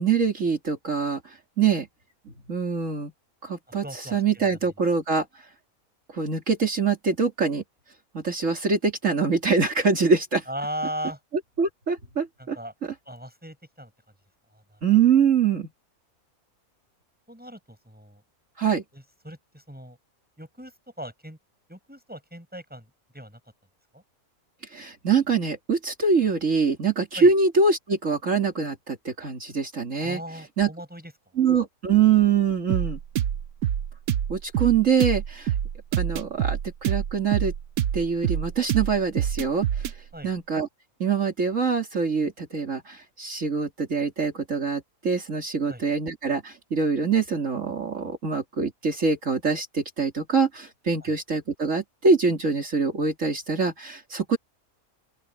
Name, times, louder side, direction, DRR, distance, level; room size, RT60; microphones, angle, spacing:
voice 1, 0.0-1.9 2.5-3.1 3.4-5.3 6.1-7.6 8.1-10.4 11.6-12.6 14.8-15.7 18.6-18.8 24.7-30.2 30.6-30.7 31.4-33.0 34.3-35.5 35.9-37.5 37.9-39.9 40.2-40.7 41.0-54.4, right 5 dB, 60° right, 3.0 m, -24 dB
voice 2, 3.8-4.5 10.5-11.2 12.4-12.7 13.0-13.9 14.5-14.8 17.3-18.2 18.9-20.0 20.4-20.7 21.0-21.4 21.7-22.9 23.1-23.4 23.9-24.0 27.1-27.3 30.0-31.1 40.1-40.3 45.7-45.8 51.0-51.1, equal, 5° right, 6.8 m, -38 dB
sound 1, 32.7-40.0, right 10 dB, 85° right, 1.3 m, -26 dB
open air
omnidirectional pair, 1.5 m